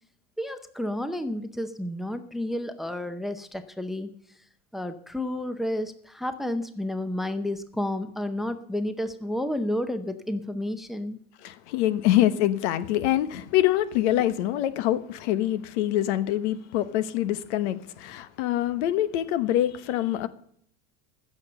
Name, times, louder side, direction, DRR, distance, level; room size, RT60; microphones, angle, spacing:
voice 1, 0.4-4.1 4.7-11.2, left 1 dB, ahead, 0.6 m, -31 dB
voice 2, 11.4-20.3, left 13 dB, 90° left, 1.2 m, -25 dB
15.0 x 7.1 x 6.7 m
cardioid pair, 155°, 33 cm